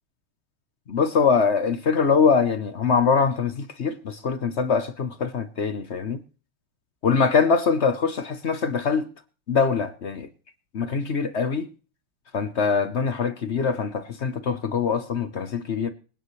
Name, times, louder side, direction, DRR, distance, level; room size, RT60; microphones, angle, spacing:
voice 1, 0.9-6.2 7.0-9.1 9.5-10.3 10.7-11.7 12.3-15.9, left 5 dB, 60° left, 0.7 m, -23 dB
26.0 x 9.6 x 3.2 m
omnidirectional pair, 2.4 m